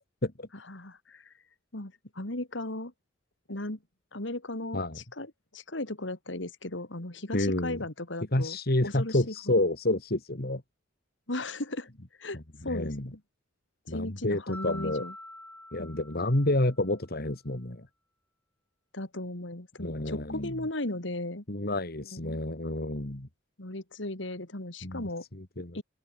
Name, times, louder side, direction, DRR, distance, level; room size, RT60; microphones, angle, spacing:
voice 1, 0.7-1.3 1.7-2.9 3.5-3.8 4.1-8.6 8.8-9.3 11.3-11.9 12.2-12.4 12.6-13.2 13.9-15.1 15.8-16.0 18.9-21.4 22.1-22.4 23.6-25.2 25.7-25.8, left 1 dB, 70° left, 3.0 m, -36 dB
voice 2, 7.3-7.8 8.3-10.6 12.3-13.1 13.9-15.0 15.7-17.9 19.8-20.6 21.5-23.3 24.8-25.8, left 1 dB, 55° left, 2.5 m, -29 dB
Mallet percussion, 14.5-16.9, left 1 dB, 10° left, 5.7 m, -45 dB
open air
head